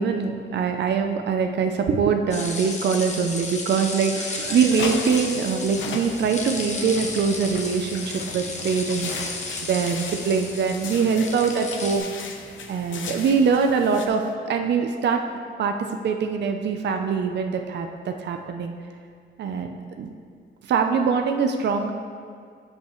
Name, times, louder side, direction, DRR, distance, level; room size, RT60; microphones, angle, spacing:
voice 1, 0.0-9.1 9.6-12.1 12.7-15.2 15.6-15.7 16.0-18.7 19.4-20.1 20.6-21.9, right 5 dB, 60° right, 5 dB, 0.5 m, -23 dB
sound 1, 2.3-12.0, left 3 dB, 35° left, 1.0 m, -33 dB
sound 2, 4.3-14.1, left 4 dB, 70° left, 0.8 m, -37 dB
16.0 x 5.5 x 3.1 m, 2.2 s
wide cardioid pair, 175°, 20 cm